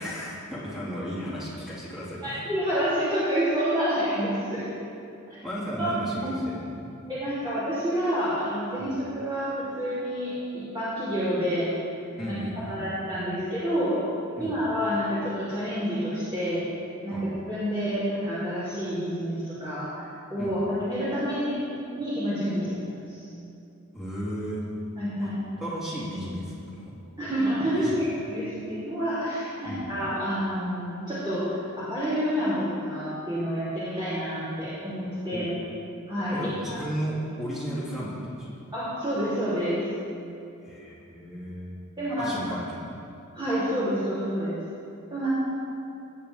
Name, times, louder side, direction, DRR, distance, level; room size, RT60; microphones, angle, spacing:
voice 1, 0.0-2.3 5.4-6.9 8.8-8.9 12.2-12.9 14.4-14.5 17.1-17.2 20.4-20.5 23.9-24.6 25.2-25.3 25.6-26.9 27.8-27.9 29.6-29.9 35.3-35.6 36.3-38.6 40.6-41.8 42.2-42.9, equal, ahead, -8 dB, 2.8 m, -34 dB
voice 2, 2.2-4.6 5.8-5.9 6.2-6.3 7.1-11.7 12.2-12.4 12.7-14.0 14.4-16.6 17.0-17.2 17.5-20.0 20.3-21.6 21.9-23.2 25.0-25.4 27.2-31.5 31.8-35.5 36.1-36.4 36.6-36.8 38.7-39.8 42.0-42.3 43.3-44.6 45.1-45.3, equal, 20° right, -13 dB, 3.2 m, -28 dB
18.5 x 8.4 x 3.5 m, 2.6 s
head